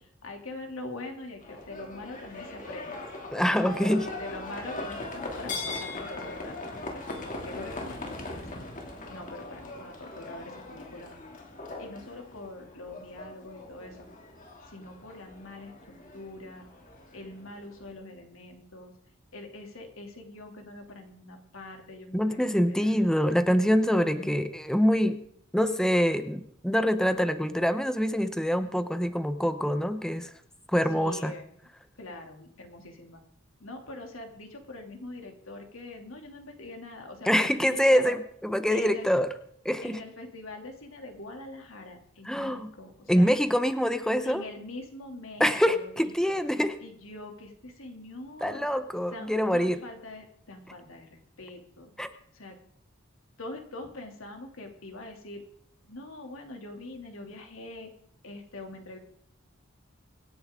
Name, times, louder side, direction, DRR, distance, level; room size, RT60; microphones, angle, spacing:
voice 1, 0.2-3.0 3.5-8.6 9.1-11.1 11.8-14.1 14.7-16.7 17.1-18.9 19.3-23.0 23.9-24.3 30.0-30.3 30.9-31.5 32.0-33.2 33.6-38.2 38.7-39.1 39.8-43.3 44.2-46.4 46.8-48.7 49.1-51.9 52.3-52.6 53.4-55.4 55.9-57.9 58.2-59.0, left 2 dB, 90° left, 3 dB, 2.9 m, -43 dB
Livestock farm animals working animals, 1.4-17.9, left 2 dB, 40° left, 2.8 m, -40 dB
voice 2, 3.3-4.1 22.1-25.2 25.5-30.3 30.7-31.3 37.2-39.3 39.6-40.0 42.2-42.7 43.1-44.4 45.4-46.8 48.4-49.8 52.0-52.1, equal, 5° left, 10 dB, 0.8 m, -25 dB
25.0 x 10.0 x 3.8 m, 0.65 s
head